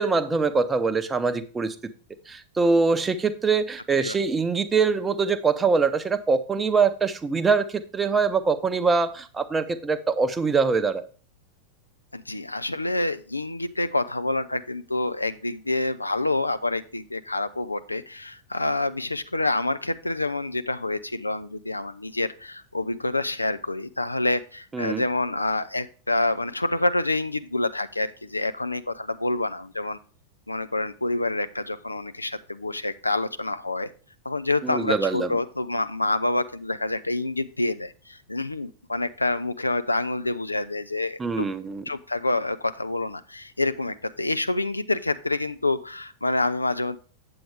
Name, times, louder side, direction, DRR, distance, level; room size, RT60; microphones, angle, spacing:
voice 1, 0.0-1.7 2.3-11.1 24.7-25.0 34.6-35.3 41.2-41.8, right 4 dB, 15° right, 10 dB, 0.7 m, -23 dB
voice 2, 12.1-30.0 30.5-33.9 34.2-41.5 41.9-47.0, left 2 dB, 85° left, 12 dB, 0.4 m, -27 dB
7.9 x 7.6 x 3.4 m, 0.38 s
figure-of-eight pair, 90°, 0 cm